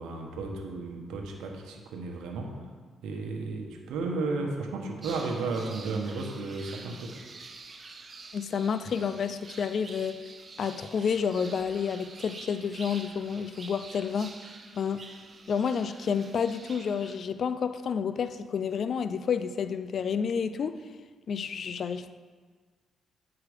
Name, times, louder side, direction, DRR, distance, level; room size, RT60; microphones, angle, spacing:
voice 1, 0.0-2.5 3.0-7.2, right 3 dB, 85° right, 2 dB, 1.0 m, -33 dB
sound 1, 5.0-17.2, right 3 dB, 40° right, 0.8 m, -47 dB
voice 2, 8.3-10.2 10.6-14.3 14.8-15.0 15.5-20.8 21.3-22.1, left 6 dB, 60° left, 12 dB, 0.4 m, -30 dB
8.1 x 4.9 x 4.9 m, 1.5 s
cardioid pair, 70°, 0 cm